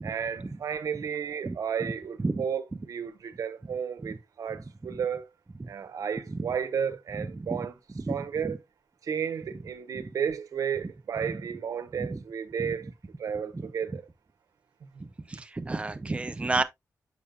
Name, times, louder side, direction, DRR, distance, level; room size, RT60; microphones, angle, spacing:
voice 1, 0.0-5.3 5.7-7.7 8.1-8.6 9.0-12.9 13.2-14.0, right 7 dB, 75° right, 1.0 m, -33 dB
voice 2, 1.4-1.9 2.2-2.4 4.0-4.2 4.9-5.0 5.6-5.7 6.3-6.5 7.2-7.7 8.0-8.5 9.9-10.1 11.2-11.4 12.0-12.2 12.6-12.7 13.5-13.7 15.3-16.6, right 3 dB, 20° right, 0.6 m, -32 dB
6.9 x 6.7 x 2.3 m
wide cardioid pair, 160°, 6 cm